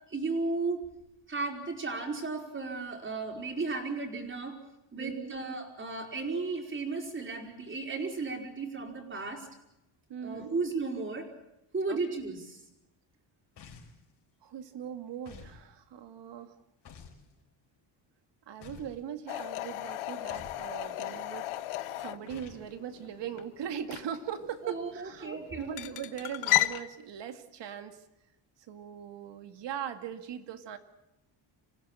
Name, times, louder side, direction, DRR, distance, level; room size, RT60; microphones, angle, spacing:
voice 1, 0.1-0.9 1.3-4.6 4.9-9.5 10.2-11.3 11.7-12.6 24.6-25.9, right 3 dB, 25° right, 3 dB, 4.8 m, -34 dB
voice 2, 5.0-5.3 10.1-10.5 11.9-12.0 14.4-16.5 18.5-21.5 22.0-28.0 28.7-30.8, right 9 dB, 60° right, 8 dB, 2.2 m, -40 dB
sound 1, 13.6-14.0 15.2-15.6 16.8-17.2 18.6-19.0 20.3-20.7 22.3-22.7, left 6 dB, 55° left, 5.3 m, -49 dB
sound 2, 19.3-26.8, left 16 dB, 85° left, 1.2 m, -35 dB
27.0 x 16.0 x 9.0 m, 0.92 s
cardioid pair, 130°, 49 cm